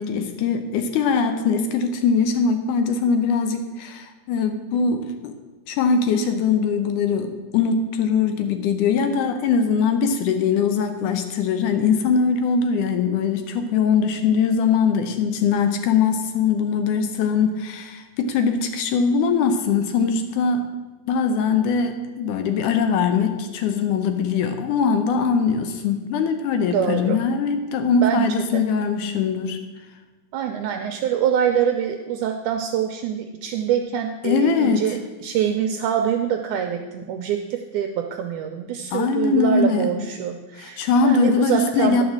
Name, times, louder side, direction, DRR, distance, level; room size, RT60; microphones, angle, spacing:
voice 1, 0.0-5.4 5.7-20.7 21.1-29.6 34.2-35.0 38.9-39.9 40.6-42.0, left 5 dB, 75° left, 7 dB, 2.0 m, -21 dB
voice 2, 26.6-27.2 28.0-28.3 28.5-28.6 30.3-42.0, right 9 dB, 80° right, 5 dB, 1.8 m, -25 dB
10.5 x 5.0 x 7.3 m, 1.2 s
omnidirectional pair, 4.0 m